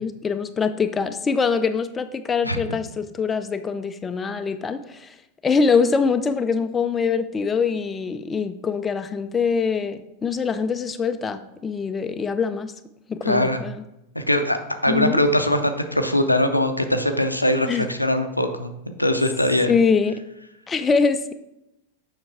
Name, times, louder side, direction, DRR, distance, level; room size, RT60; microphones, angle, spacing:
voice 1, 0.0-5.2 5.4-12.7 13.1-13.8 14.9-15.2 17.6-17.9 19.7-20.2 20.7-21.3, left 5 dB, 20° left, 9 dB, 0.4 m, -23 dB
voice 2, 13.2-13.6 14.2-18.7 19.0-19.7, left 1 dB, 85° left, 7 dB, 0.6 m, -21 dB
7.4 x 5.6 x 3.5 m, 0.86 s
figure-of-eight pair, 90°, 0 cm